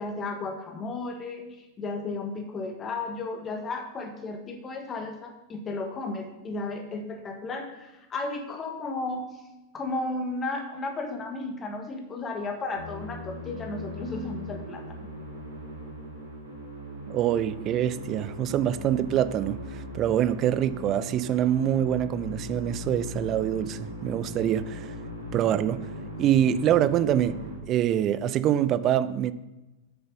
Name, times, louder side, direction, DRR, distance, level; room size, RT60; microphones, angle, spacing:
voice 1, 0.0-9.4 9.7-15.1, left 3 dB, 25° left, 1.3 m, -34 dB
Musical instrument, 12.7-27.6, equal, 80° right, 3.7 m, -39 dB
voice 2, 17.1-24.9 25.3-25.9 26.2-29.3, right 11 dB, 35° right, 0.5 m, -25 dB
7.9 x 6.9 x 5.3 m
figure-of-eight pair, 90°, 0 cm